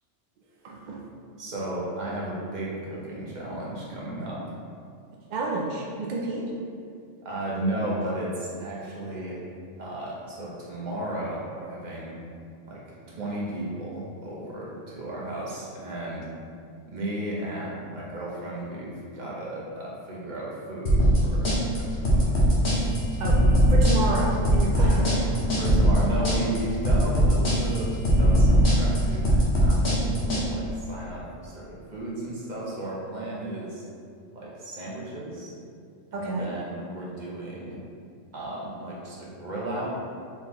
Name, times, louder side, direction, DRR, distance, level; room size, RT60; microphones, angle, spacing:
voice 1, 0.6-1.1 5.3-6.5 15.2-15.3 23.2-25.3 36.1-36.5, right 2 dB, 70° right, -2 dB, 0.4 m, -30 dB
voice 2, 1.4-4.5 7.2-9.4 9.8-12.2 12.7-16.3 16.9-22.5 24.7-33.8 34.3-35.5 36.1-37.8 38.3-39.9, right 1 dB, 40° right, -5 dB, 0.9 m, -34 dB
sound 1, 20.9-30.4, equal, 60° left, 1.1 m, -20 dB
4.3 x 3.8 x 3.0 m, 2.4 s
omnidirectional pair, 1.3 m